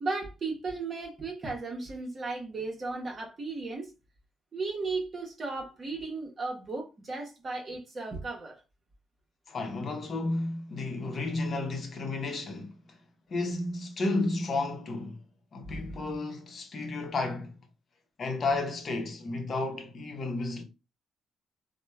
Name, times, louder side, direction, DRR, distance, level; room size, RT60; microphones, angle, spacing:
voice 1, 0.0-3.9 4.5-8.6 15.6-16.0, right 3 dB, 40° right, 0.8 m, -35 dB
voice 2, 9.5-12.7 13.3-15.2 15.5-17.5 18.2-20.6, left 2 dB, 50° left, 0.7 m, -32 dB
2.9 x 2.1 x 2.2 m
cardioid pair, 90°, 0 cm